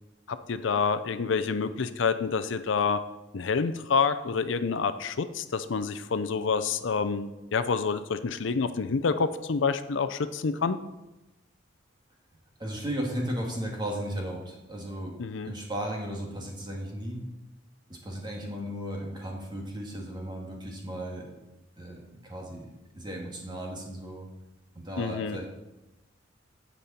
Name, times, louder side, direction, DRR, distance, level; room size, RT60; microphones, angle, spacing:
voice 1, 0.3-3.0 3.3-10.8 15.2-15.5 25.0-25.4, left 5 dB, 65° left, 11 dB, 0.5 m, -28 dB
voice 2, 12.6-15.2 15.4-17.2 17.9-21.4 21.8-22.7 22.9-24.3 24.7-25.5, right 1 dB, 25° right, -1 dB, 2.1 m, -35 dB
15.5 x 5.4 x 4.3 m, 0.98 s
head